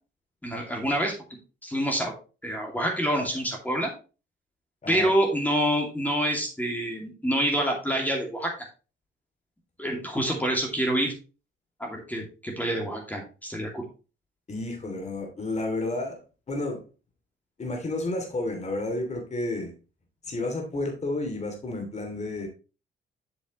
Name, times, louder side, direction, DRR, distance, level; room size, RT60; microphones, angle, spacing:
voice 1, 0.4-1.1 1.6-2.1 2.4-3.9 4.9-8.5 9.8-11.1 11.8-13.9, equal, 10° left, 1 dB, 2.5 m, -27 dB
voice 2, 14.5-16.2 16.5-16.8 17.6-19.7 20.3-22.5, left 2 dB, 35° left, 3 dB, 2.8 m, -31 dB
7.7 x 7.0 x 3.1 m, 0.33 s
cardioid pair, 90°, 20 cm